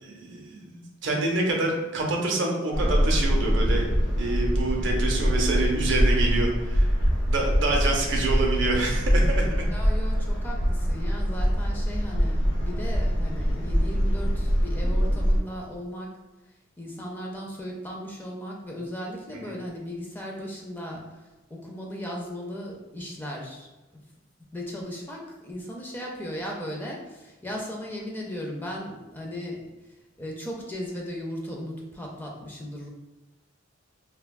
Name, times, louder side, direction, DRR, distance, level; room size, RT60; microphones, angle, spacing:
voice 1, 0.0-3.9 4.2-6.9 7.3-9.5 19.4-19.6, right 2 dB, 60° right, 0 dB, 0.6 m, -27 dB
sound 1, 2.7-15.4, equal, 60° left, 0.6 m, -24 dB
voice 2, 9.7-16.1 16.8-21.0 21.5-23.7 24.5-29.6 30.2-32.9, equal, 10° left, -2 dB, 0.4 m, -36 dB
3.3 x 2.2 x 2.2 m, 1.1 s
head